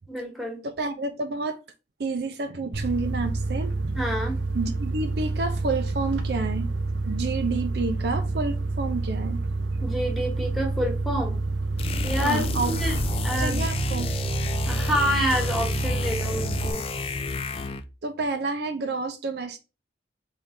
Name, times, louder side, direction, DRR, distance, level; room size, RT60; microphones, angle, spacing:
voice 1, 0.1-0.6 4.0-4.4 9.8-11.4 12.0-13.6 14.7-16.8, equal, ahead, 1.2 m, -28 dB
voice 2, 0.6-1.6 2.0-4.0 4.5-6.7 7.0-9.4 12.2-12.7 13.4-14.1 18.0-19.6, right 3 dB, 65° right, 0.5 m, -29 dB
sound 1, 2.7-16.7, right 3 dB, 90° right, 0.7 m, -28 dB
sound 2, 11.8-17.9, left 4 dB, 30° left, 0.4 m, -31 dB
3.7 x 3.3 x 4.3 m
head